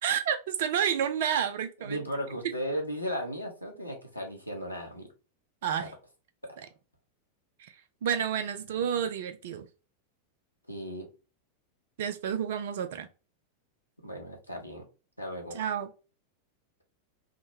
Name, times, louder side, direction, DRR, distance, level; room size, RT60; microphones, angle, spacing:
voice 1, 0.0-2.0 5.6-5.9 7.6-7.7 8.0-9.7 12.0-13.1 15.5-15.9, right 8 dB, 55° right, 0.3 m, -30 dB
voice 2, 1.8-5.1 5.8-5.9 8.8-8.9 10.7-11.1 14.0-14.8 15.2-15.6, equal, 90° left, 1.0 m, -36 dB
3.6 x 2.1 x 2.7 m
figure-of-eight pair, 90°, 0 cm